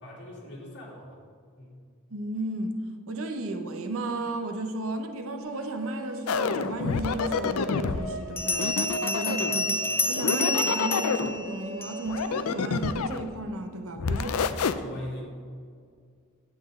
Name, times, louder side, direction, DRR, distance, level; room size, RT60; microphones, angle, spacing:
voice 1, 0.0-1.2 1.6-1.8 14.4-15.3, left 1 dB, 55° left, -4 dB, 2.7 m, -41 dB
voice 2, 2.1-2.8 3.1-8.7 9.0-9.8 10.1-14.5, right 2 dB, 70° right, 6 dB, 0.8 m, -34 dB
sound 1, 5.4-12.5, right 2 dB, 15° right, 2.3 m, -40 dB
sound 2, 6.3-8.0 8.6-9.6 10.1-11.4 12.1-13.3 14.0-14.7, left 5 dB, 85° left, 0.5 m, -28 dB
Bell, 7.1-7.2 8.4-12.2, left 2 dB, 10° left, 0.4 m, -29 dB
10.5 x 8.2 x 3.7 m, 2.1 s
head